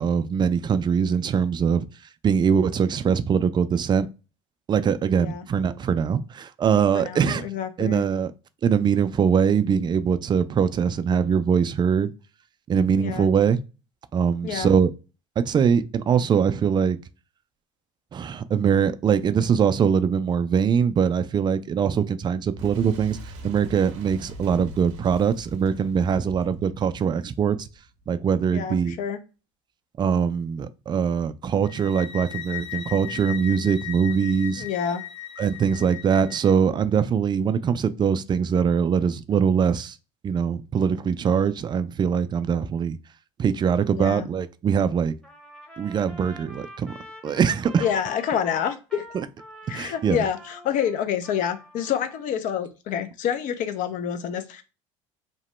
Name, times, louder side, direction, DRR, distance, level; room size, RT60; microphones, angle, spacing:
voice 1, 0.0-1.9 2.2-4.1 4.7-7.5 7.8-8.3 8.6-12.1 12.7-13.6 14.1-14.9 15.4-17.0 18.1-23.2 23.4-27.7 28.1-29.0 30.0-34.7 35.4-39.9 40.2-43.0 43.4-45.1 45.8-46.9 47.2-47.8 49.7-50.2, right 7 dB, 30° right, 0.3 m, -22 dB
voice 2, 6.9-8.0 13.0-13.3 14.4-14.7 28.5-29.2 34.6-35.0 43.9-44.3 47.8-49.0 49.7-54.6, left 8 dB, 55° left, 0.5 m, -28 dB
Boom, 22.6-28.1, right 1 dB, 70° right, 0.6 m, -42 dB
sound 1, 31.6-36.5, left 12 dB, 70° left, 1.1 m, -37 dB
Trumpet, 45.2-52.3, equal, 5° left, 0.8 m, -45 dB
2.9 x 2.1 x 3.0 m
hypercardioid pair, 75°, 16 cm